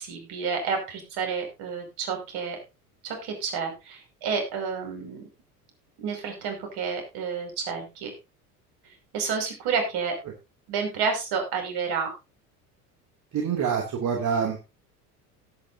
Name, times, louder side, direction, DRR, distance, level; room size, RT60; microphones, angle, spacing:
voice 1, 0.0-2.6 3.0-5.3 6.0-8.1 9.1-10.1 10.7-12.1, right 5 dB, 55° right, 4 dB, 5.7 m, -30 dB
voice 2, 13.3-14.6, right 6 dB, 40° right, 1 dB, 2.7 m, -26 dB
17.5 x 9.1 x 2.7 m, 0.27 s
figure-of-eight pair, 70°, 46 cm